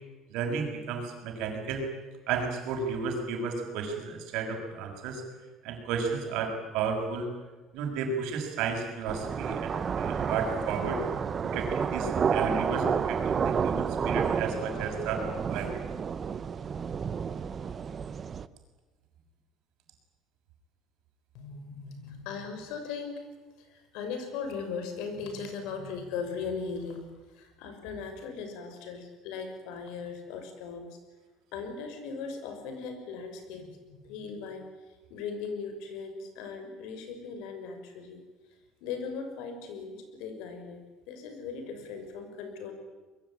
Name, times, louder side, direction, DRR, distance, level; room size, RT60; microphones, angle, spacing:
voice 1, 0.3-1.8 2.3-5.2 5.6-7.3 7.7-11.0 11.4-15.8, right 5 dB, 70° right, 4 dB, 6.1 m, -33 dB
sound 1, 9.1-18.5, right 6 dB, 25° right, 0.8 m, -30 dB
voice 2, 21.3-23.2 23.6-31.0 31.5-38.2 38.8-42.7, left 5 dB, 80° left, 6 dB, 6.1 m, -38 dB
25.0 x 22.0 x 8.8 m, 1.2 s
cardioid pair, 165°, 0 cm